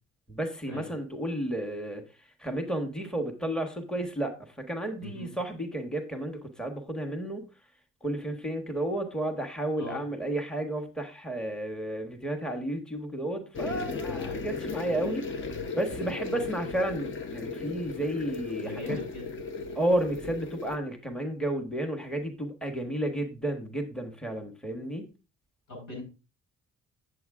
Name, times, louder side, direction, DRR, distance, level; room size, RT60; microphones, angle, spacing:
voice 1, 0.3-2.0 2.4-7.5 8.0-19.0 19.7-25.1, right 1 dB, 5° left, 4 dB, 1.2 m, -32 dB
voice 2, 5.0-5.4 9.8-10.0 18.5-19.3 25.7-26.0, left 2 dB, 75° left, 2 dB, 5.0 m, -41 dB
sound 1, 13.5-20.8, left 4 dB, 40° left, 1.0 m, -36 dB
7.7 x 7.6 x 3.6 m, 0.31 s
cardioid pair, 90°, 30 cm